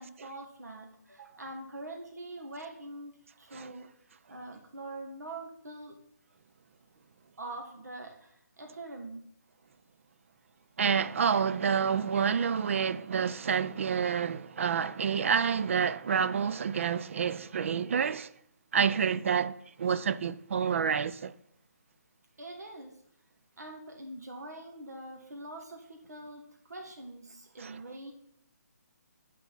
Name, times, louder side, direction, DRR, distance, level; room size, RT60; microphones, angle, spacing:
voice 1, 0.0-3.9 4.3-6.0 7.4-9.3 22.4-23.0 23.6-28.1, right 2 dB, 70° right, 1.5 m, -44 dB
voice 2, 10.8-18.3 18.7-21.3 27.6-27.8, right 7 dB, 50° right, 0.4 m, -28 dB
8.1 x 4.4 x 5.6 m
figure-of-eight pair, 150°, 9 cm